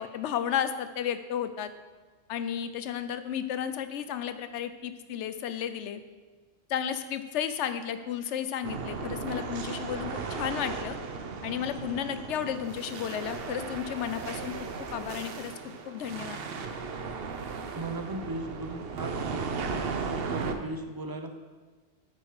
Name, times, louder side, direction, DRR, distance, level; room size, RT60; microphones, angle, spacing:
voice 1, 0.0-1.7 2.3-6.0 6.7-11.0 11.4-15.5 15.9-16.4, left 9 dB, 80° left, 11 dB, 0.9 m, -33 dB
sound 1, 8.6-20.5, right 5 dB, 60° right, 0.9 m, -36 dB
voice 2, 17.7-21.4, right 2 dB, 25° right, 6 dB, 0.5 m, -38 dB
8.6 x 6.5 x 4.7 m, 1.4 s
omnidirectional pair, 1.2 m